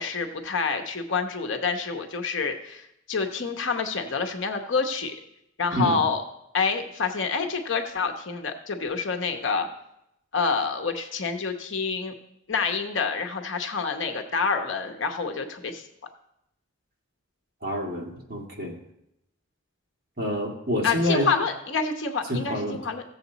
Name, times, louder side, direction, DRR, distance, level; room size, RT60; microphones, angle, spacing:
voice 1, 0.0-5.1 5.6-6.2 6.5-9.7 10.3-12.1 12.5-15.8 20.8-23.0, left 5 dB, 60° left, 4 dB, 0.9 m, -27 dB
voice 2, 17.6-18.7 20.2-21.3 22.3-22.8, equal, 45° right, -1 dB, 2.1 m, -27 dB
15.5 x 7.2 x 4.0 m, 0.82 s
head